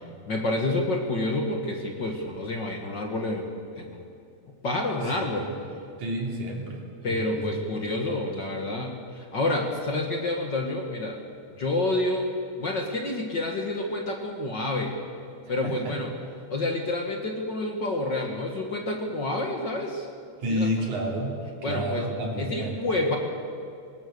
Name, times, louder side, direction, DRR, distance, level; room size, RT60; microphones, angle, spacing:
voice 1, 0.0-3.5 3.7-4.1 4.6-5.5 7.0-11.2 11.6-12.3 12.6-15.0 15.5-16.1 16.5-20.1 20.5-20.8 21.6-22.0 22.4-23.2, left 2 dB, 45° left, 2 dB, 2.0 m, -28 dB
voice 2, 5.0-5.6 6.0-7.6 8.1-8.2 15.4-16.0 20.4-22.8, right 1 dB, 80° right, -1 dB, 4.5 m, -31 dB
23.0 x 19.5 x 6.7 m, 2.4 s
omnidirectional pair, 3.4 m